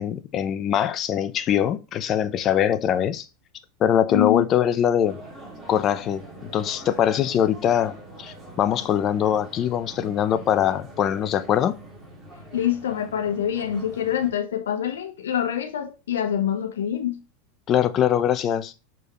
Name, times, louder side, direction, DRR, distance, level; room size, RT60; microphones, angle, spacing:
voice 1, 0.0-3.2 3.8-5.2 5.7-6.2 6.5-11.8 17.7-18.7, left 9 dB, 35° left, 0.7 m, -22 dB
voice 2, 4.1-4.4 12.5-17.2, left 10 dB, 90° left, 1.1 m, -25 dB
sound 1, 5.0-14.3, right 2 dB, ahead, 3.8 m, -43 dB
6.8 x 4.6 x 3.1 m
supercardioid pair, 120°, 0 cm